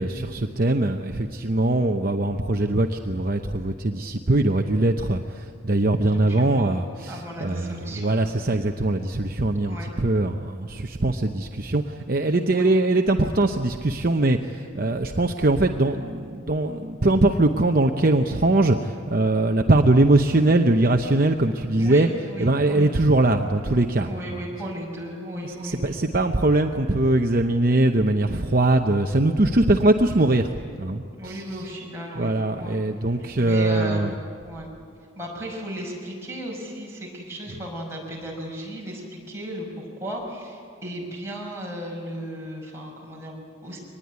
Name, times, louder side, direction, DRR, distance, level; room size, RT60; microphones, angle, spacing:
voice 1, 0.0-24.4 25.4-30.5 30.8-31.6 32.2-34.2, right 2 dB, 45° right, 4 dB, 0.8 m, -22 dB
voice 2, 6.1-8.1 9.6-9.9 12.5-12.7 21.8-22.9 24.0-25.9 31.1-32.3 32.6-32.8 33.4-34.7 35.2-43.8, equal, 15° right, -3 dB, 5.8 m, -35 dB
24.5 x 20.0 x 9.6 m, 2.3 s
head